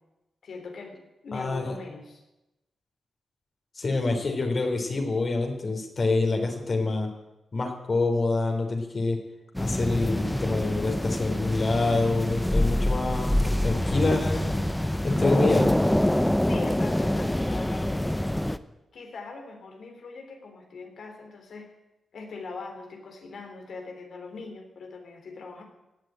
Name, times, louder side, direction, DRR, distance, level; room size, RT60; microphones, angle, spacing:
voice 1, 0.4-2.2 6.3-6.4 16.5-18.2 18.9-21.7 22.1-25.6, left 4 dB, 75° left, 3 dB, 3.6 m, -41 dB
voice 2, 1.3-1.7 3.8-7.1 7.5-9.2 9.6-14.6 15.0-15.7, left 3 dB, 50° left, 3 dB, 3.7 m, -26 dB
sound 1, 9.5-18.6, left 1 dB, 10° left, 0.8 m, -25 dB
17.0 x 8.4 x 9.0 m, 0.96 s
cardioid pair, 60°, 0 cm